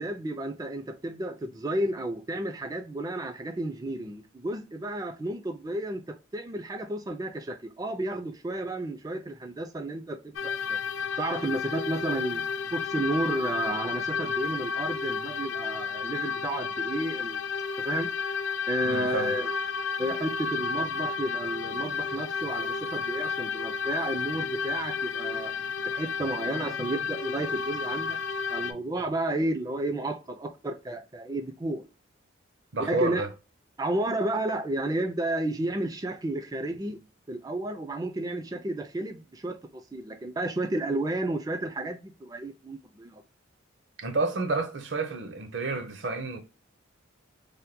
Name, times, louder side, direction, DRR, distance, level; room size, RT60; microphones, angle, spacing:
voice 1, 0.0-10.8 11.2-12.4 12.7-17.4 17.8-18.1 18.7-19.5 20.0-25.5 25.9-28.2 28.5-31.8 32.8-33.3 33.8-37.0 37.3-43.2, right 1 dB, 20° right, 0.3 m, -32 dB
sound 1, 10.3-28.7, left 5 dB, 65° left, 0.3 m, -32 dB
voice 2, 18.8-19.4 32.7-33.3 44.0-46.4, right 3 dB, 65° right, 0.6 m, -30 dB
3.3 x 2.1 x 2.7 m
head